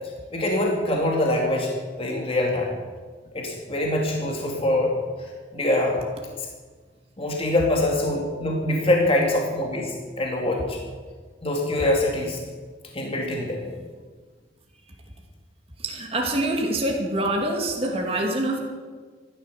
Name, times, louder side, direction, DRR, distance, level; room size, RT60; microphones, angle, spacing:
voice 1, 0.3-1.7 2.0-2.7 3.3-4.9 5.5-6.0 7.2-10.8 11.4-12.4 12.9-13.7, left 1 dB, 30° left, -1 dB, 2.6 m, -24 dB
voice 2, 15.8-18.6, right 1 dB, 35° right, 1 dB, 2.4 m, -25 dB
14.0 x 12.5 x 6.9 m, 1.5 s
head